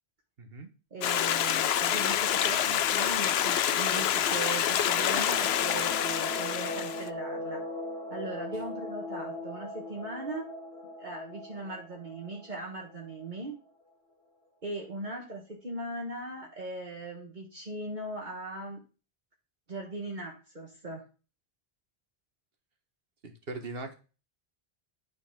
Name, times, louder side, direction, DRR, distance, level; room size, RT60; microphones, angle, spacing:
voice 1, 0.4-0.7 23.2-23.9, right 2 dB, 65° right, 6 dB, 1.6 m, -39 dB
voice 2, 0.9-7.7 8.1-10.5 11.0-13.6 14.6-18.8 19.7-21.0, right 2 dB, 45° right, 0 dB, 1.6 m, -39 dB
Stream, 1.0-7.1, left 10 dB, 75° left, 0.8 m, -27 dB
sound 1, 4.8-13.4, left 1 dB, 30° right, 1.9 m, -40 dB
9.8 x 4.4 x 5.8 m, 0.34 s
omnidirectional pair, 1.1 m